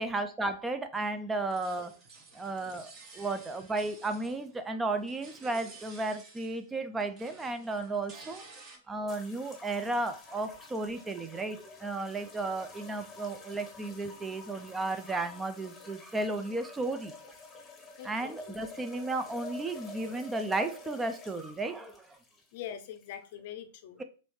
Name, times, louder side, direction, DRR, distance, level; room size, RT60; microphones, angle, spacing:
voice 1, 0.0-2.0 2.3-8.4 8.9-17.1 18.0-22.2, right 2 dB, 10° right, 0.3 m, -34 dB
sound 1, 1.3-4.7 4.9-6.7 7.0-8.8, right 3 dB, 35° right, 1.0 m, -53 dB
sound 2, 9.1-23.3, left 4 dB, 15° left, 0.8 m, -49 dB
voice 2, 18.0-18.6 22.5-24.0, left 10 dB, 50° left, 0.5 m, -43 dB
4.0 x 3.1 x 3.1 m
figure-of-eight pair, 105°, 0 cm